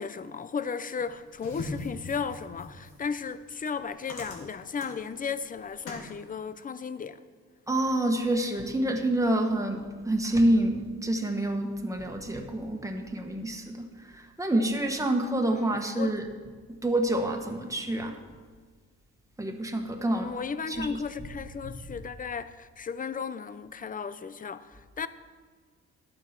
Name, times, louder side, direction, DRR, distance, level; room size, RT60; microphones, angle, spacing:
voice 1, 0.0-7.2 15.5-16.2 20.1-25.1, left 6 dB, 30° left, 0.6 m, -35 dB
sound 1, 1.0-6.1, left 2 dB, 80° left, 3.3 m, -43 dB
voice 2, 7.7-16.3 16.7-18.2 19.4-20.3 20.7-21.3, right 1 dB, 10° right, 1.5 m, -28 dB
12.0 x 7.6 x 6.0 m
cardioid pair, 90°, 30 cm